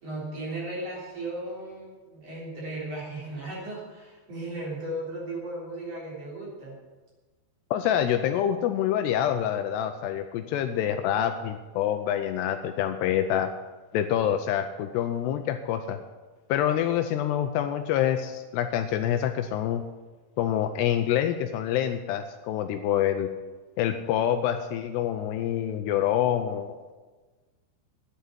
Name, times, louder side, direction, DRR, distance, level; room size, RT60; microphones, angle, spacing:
voice 1, 0.0-6.8, right 1 dB, 35° right, -4 dB, 4.4 m, -36 dB
voice 2, 7.7-13.5 13.9-16.0 16.5-19.8 20.4-23.3 23.8-26.9, left 10 dB, 80° left, 8 dB, 2.6 m, -26 dB
10.5 x 8.3 x 9.7 m, 1.3 s
omnidirectional pair, 5.1 m